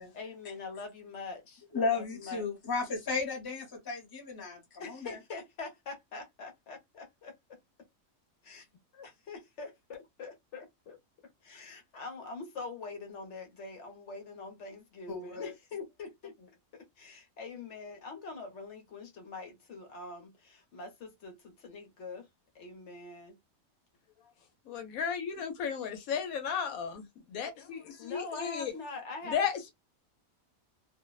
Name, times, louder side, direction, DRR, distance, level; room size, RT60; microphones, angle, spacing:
voice 1, 0.1-2.4 4.8-7.6 8.5-8.6 9.0-11.0 11.4-22.3 22.5-23.4 28.0-29.4, left 3 dB, 60° left, 1.1 m, -44 dB
voice 2, 1.7-5.2 15.1-15.5, left 4 dB, 20° left, 0.7 m, -34 dB
voice 3, 24.7-28.7 29.3-29.7, left 7 dB, 80° left, 1.1 m, -34 dB
2.7 x 2.0 x 2.2 m
omnidirectional pair, 1.5 m